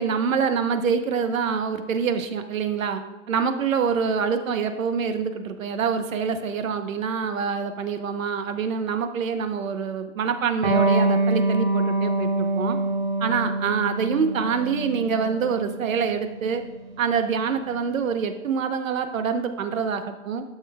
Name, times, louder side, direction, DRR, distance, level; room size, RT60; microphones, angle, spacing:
voice 1, 0.0-3.0 3.3-12.8 13.2-16.6 17.0-20.4, right 6 dB, 90° right, 8 dB, 1.1 m, -26 dB
Electric guitar, 10.6-17.8, right 2 dB, 50° right, 1.8 m, -25 dB
11.5 x 6.8 x 2.4 m, 1.1 s
hypercardioid pair, 165°, 39 cm